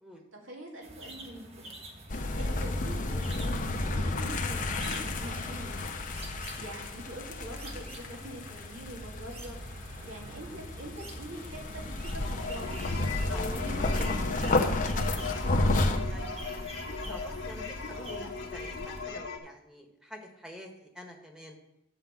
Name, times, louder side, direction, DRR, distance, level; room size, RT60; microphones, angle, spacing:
voice 1, 0.3-1.7 2.4-5.9 6.4-9.6 10.0-12.8 13.2-15.3, right 1 dB, 75° right, -1 dB, 2.7 m, -44 dB
sound 1, 0.8-18.2, right 2 dB, 30° right, 1.3 m, -47 dB
sound 2, 2.1-19.0, left 2 dB, 40° left, 0.9 m, -32 dB
voice 2, 6.1-6.5 13.3-13.5 16.1-16.7 17.0-21.5, equal, 5° right, 2 dB, 1.5 m, -48 dB
sound 3, 12.2-19.4, left 4 dB, 70° left, 1.7 m, -39 dB
9.9 x 4.8 x 7.5 m, 0.80 s
head